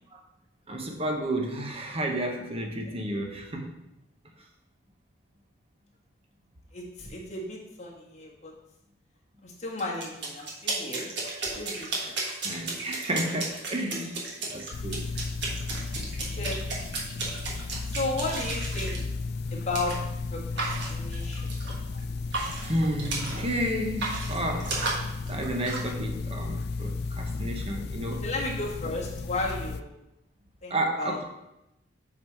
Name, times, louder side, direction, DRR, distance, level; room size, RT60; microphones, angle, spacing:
voice 1, 0.7-3.7 12.4-15.1 20.6-20.8 22.7-24.8 25.3-28.3 30.7-31.2, right 1 dB, 30° right, 3 dB, 0.9 m, -31 dB
voice 2, 6.7-8.5 9.4-11.1 11.5-11.9 16.4-16.6 17.9-19.0 19.5-20.0 20.3-21.4 28.2-29.9 30.6-31.2, left 2 dB, 40° left, -3 dB, 1.6 m, -34 dB
sound 1, 9.8-19.0 19.7-20.0 20.6-22.0 22.3-23.5 23.8-25.9, right 3 dB, 65° right, 1.5 m, -34 dB
sound 2, 14.7-29.8, left 3 dB, 60° left, 0.4 m, -34 dB
7.8 x 4.0 x 4.4 m, 0.87 s
head